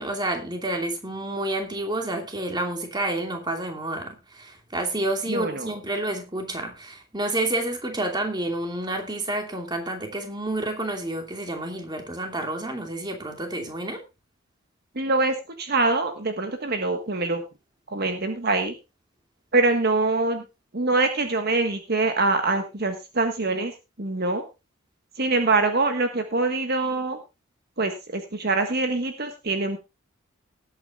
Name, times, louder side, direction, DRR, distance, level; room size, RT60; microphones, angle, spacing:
voice 1, 0.0-14.0, right 1 dB, 20° right, 2.8 m, -29 dB
voice 2, 5.3-5.7 14.9-17.4 17.9-18.7 19.5-20.4 20.7-23.7 24.0-24.4 25.2-27.2 27.8-29.8, right 3 dB, 50° right, 1.5 m, -24 dB
19.0 x 9.0 x 2.5 m
head